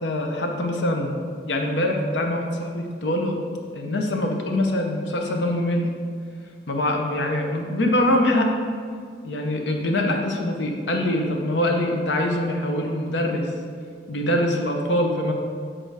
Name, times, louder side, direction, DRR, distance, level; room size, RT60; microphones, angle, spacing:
voice 1, 0.0-1.1 1.5-3.4 3.7-5.9 6.7-8.5 9.2-13.5 14.1-15.3, left 1 dB, 80° left, 3 dB, 0.8 m, -23 dB
6.6 x 3.8 x 4.8 m, 2.1 s
head